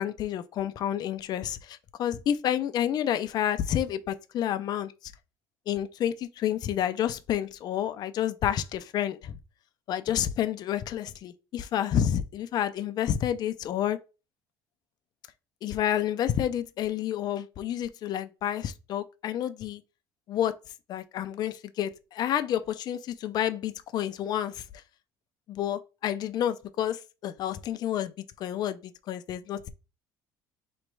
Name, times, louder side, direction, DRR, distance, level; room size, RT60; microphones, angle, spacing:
voice 1, 0.0-4.9 5.7-9.4 9.9-14.0 15.6-19.8 20.3-20.6 20.9-24.6 25.5-28.1 28.4-29.7, left 10 dB, 55° left, 0.6 m, -29 dB
3.2 x 3.1 x 4.6 m
supercardioid pair, 105°, 9 cm